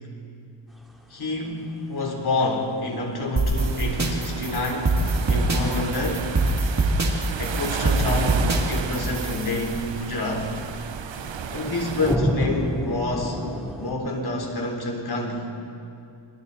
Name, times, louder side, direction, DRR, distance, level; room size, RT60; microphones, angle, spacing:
sound 1, 0.7-13.9, equal, ahead, 3.2 m, -34 dB
voice 1, 1.1-6.3 7.4-10.5 11.5-13.5 13.8-15.5, left 2 dB, 60° left, 0 dB, 4.0 m, -28 dB
sound 2, 3.4-9.7, right 2 dB, 40° right, 2.5 m, -24 dB
sound 3, 3.5-12.2, right 7 dB, 90° right, 1.1 m, -33 dB
27.5 x 24.0 x 4.2 m, 2.6 s
wide cardioid pair, 170°, 44 cm